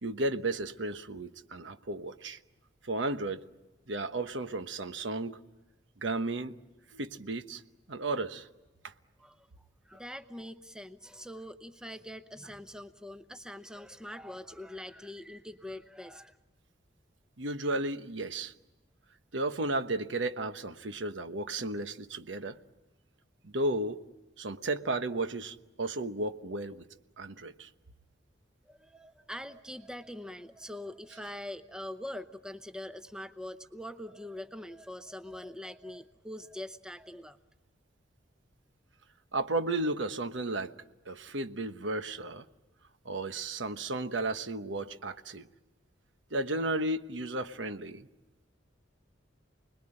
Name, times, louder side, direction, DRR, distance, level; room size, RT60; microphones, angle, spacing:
voice 1, 0.0-2.4 2.8-3.4 3.9-5.4 6.0-6.5 6.9-7.6 7.9-8.5 8.8-8.9 17.4-18.5 19.3-22.6 23.4-24.0 24.4-26.8 27.2-27.7 39.3-40.7 41.1-42.5 43.0-45.5 46.3-48.1, right 2 dB, 75° right, 1.1 m, -33 dB
voice 2, 9.9-16.4 28.6-37.4, left 1 dB, 5° right, 0.9 m, -43 dB
29.5 x 21.0 x 8.9 m
head